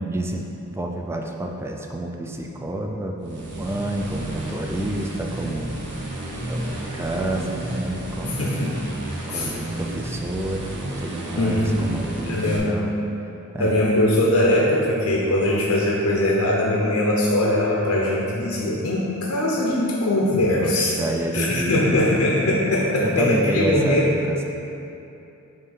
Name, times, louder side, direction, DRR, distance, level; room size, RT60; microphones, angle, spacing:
voice 1, 0.0-5.8 6.5-8.6 9.3-12.9 13.5-13.8 20.5-22.1 23.0-24.4, right 1 dB, 10° right, 1 dB, 0.4 m, -29 dB
sound 1, 3.2-12.6, right 1 dB, 55° right, 1.0 m, -32 dB
voice 2, 8.2-8.8 9.3-9.5 11.4-12.8 13.6-20.9 21.3-24.1, left 1 dB, 80° left, -4 dB, 0.7 m, -21 dB
7.5 x 2.7 x 5.4 m, 2.8 s
head